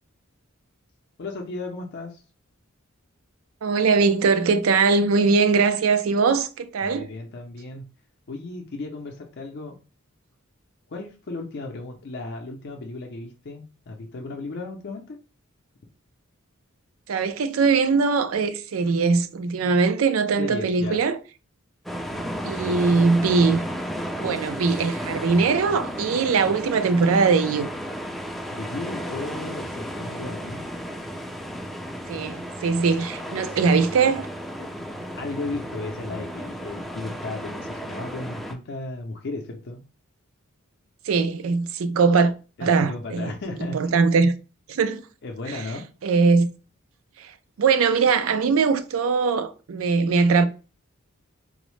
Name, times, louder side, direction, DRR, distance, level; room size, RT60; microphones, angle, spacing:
voice 1, 1.2-2.2 6.8-7.8 8.3-9.7 10.9-15.2 20.4-21.0 28.5-30.6 34.6-34.7 35.1-39.8 42.6-44.0 44.7-44.8 45.2-45.8, left 3 dB, 55° left, 0.5 m, -35 dB
voice 2, 3.6-7.1 17.1-21.2 22.4-23.7 24.2-27.7 32.1-34.3 41.0-42.3 42.6-43.3 43.7-44.3 44.7-45.0 45.5-45.6 46.0-46.5 47.2-50.5, right 4 dB, 75° right, 0.4 m, -21 dB
sound 1, 21.9-38.5, equal, ahead, 0.4 m, -33 dB
3.8 x 2.0 x 3.1 m
head